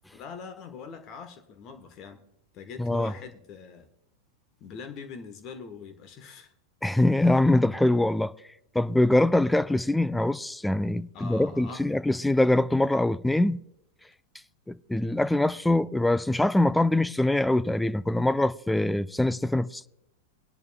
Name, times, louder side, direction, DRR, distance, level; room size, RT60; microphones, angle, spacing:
voice 1, 0.1-2.2 2.5-3.9 4.6-6.5 11.1-11.9, left 5 dB, 35° left, 1.2 m, -43 dB
voice 2, 2.8-3.1 6.8-8.3 8.7-13.6 14.7-19.9, left 1 dB, 5° left, 0.3 m, -23 dB
21.0 x 10.5 x 2.2 m
figure-of-eight pair, 90°, 0 cm